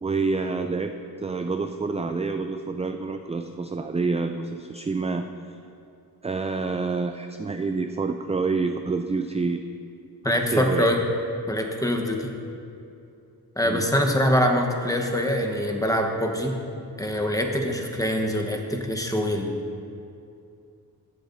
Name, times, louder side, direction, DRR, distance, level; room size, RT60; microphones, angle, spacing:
voice 1, 0.0-0.9 1.2-5.3 6.2-9.6 10.2-10.9 13.6-13.9, right 4 dB, 20° right, 7 dB, 0.3 m, -27 dB
voice 2, 10.2-11.0 11.5-12.4 13.6-16.6 17.0-19.5, equal, 10° left, 2 dB, 1.1 m, -24 dB
15.0 x 8.9 x 2.7 m, 2.6 s
wide cardioid pair, 60°, 40 cm